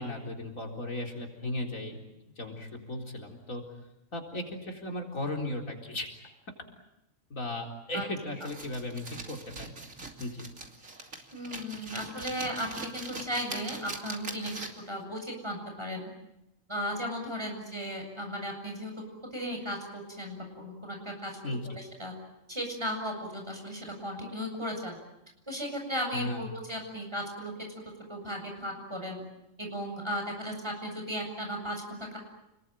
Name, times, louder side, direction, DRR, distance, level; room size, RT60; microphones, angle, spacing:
voice 1, 0.0-1.9 2.4-3.6 4.1-6.1 7.3-9.7 10.2-10.5 21.4-21.6 26.1-26.5, left 1 dB, 85° left, 2 dB, 4.5 m, -36 dB
sound 1, 8.4-14.9, right 3 dB, 75° right, 3.3 m, -42 dB
voice 2, 11.3-14.5 14.9-16.1 16.7-18.9 19.3-21.4 21.6-22.1 22.5-25.0 25.5-27.5 28.1-29.2 29.6-32.2, equal, 20° right, 2 dB, 7.5 m, -36 dB
29.5 x 21.0 x 9.1 m, 0.88 s
omnidirectional pair, 1.4 m